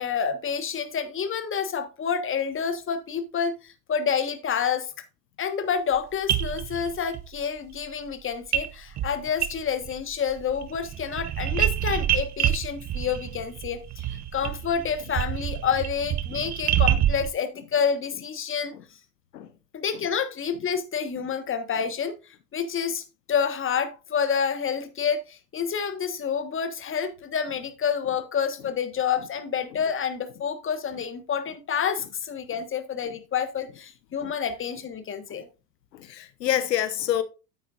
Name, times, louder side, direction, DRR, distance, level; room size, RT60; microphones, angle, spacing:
voice 1, 0.0-4.9 5.4-14.0 14.3-18.7 19.7-22.1 22.5-35.5, left 7 dB, 25° left, 1.4 m, -28 dB
sound 1, 5.9-6.0 6.3-7.2 8.5-8.7 9.0-10.0 10.3-17.3, right 11 dB, 35° right, 1.0 m, -27 dB
voice 2, 35.9-37.2, left 11 dB, 80° left, 0.9 m, -27 dB
9.4 x 8.4 x 2.5 m
hypercardioid pair, 80°, 48 cm